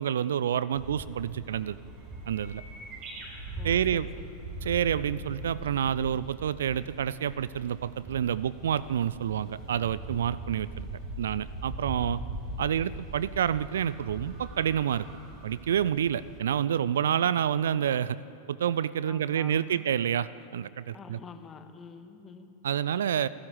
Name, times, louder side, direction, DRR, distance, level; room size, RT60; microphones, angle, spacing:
voice 1, 0.0-1.8 2.3-2.6 3.6-4.1 4.6-10.9 11.2-12.2 12.6-15.1 15.4-18.2 18.5-21.2 22.6-23.3, right 9 dB, 65° right, 18 dB, 0.5 m, -28 dB
sound 1, 0.7-16.4, right 1 dB, 40° right, 6.2 m, -41 dB
voice 2, 3.6-4.3 12.8-12.9 19.1-19.8 20.9-22.5, left 6 dB, 20° left, 7 dB, 1.8 m, -47 dB
28.0 x 13.0 x 8.4 m, 2.8 s
figure-of-eight pair, 90°, 0 cm